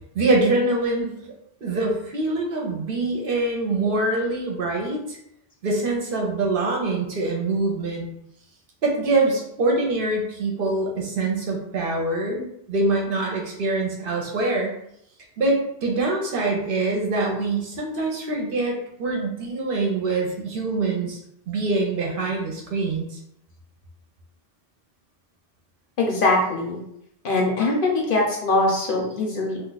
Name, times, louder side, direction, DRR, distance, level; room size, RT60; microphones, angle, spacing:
voice 1, 0.1-1.1 1.6-5.2 5.6-8.1 8.8-14.7 15.4-21.2 21.5-23.2, right 2 dB, 60° right, -1 dB, 0.8 m, -24 dB
voice 2, 26.0-26.8 27.2-29.6, left 2 dB, 60° left, -2 dB, 0.9 m, -22 dB
2.4 x 2.3 x 3.9 m, 0.75 s
omnidirectional pair, 1.1 m